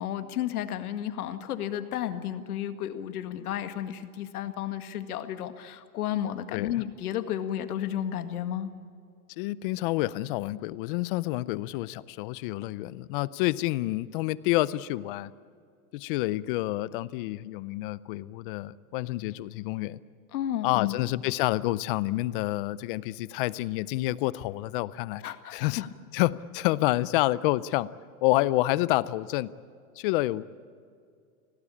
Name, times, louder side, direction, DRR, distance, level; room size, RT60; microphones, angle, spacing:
voice 1, 0.0-8.7 20.3-21.0 25.2-25.9, left 11 dB, 75° left, 9 dB, 1.9 m, -32 dB
voice 2, 6.5-6.8 9.4-15.3 15.9-20.0 20.6-25.2 25.5-25.8 26.1-27.9 28.2-29.5 30.0-30.5, left 18 dB, 40° left, 19 dB, 0.5 m, -28 dB
25.5 x 18.0 x 8.6 m, 2.3 s
supercardioid pair, 145°, 44 cm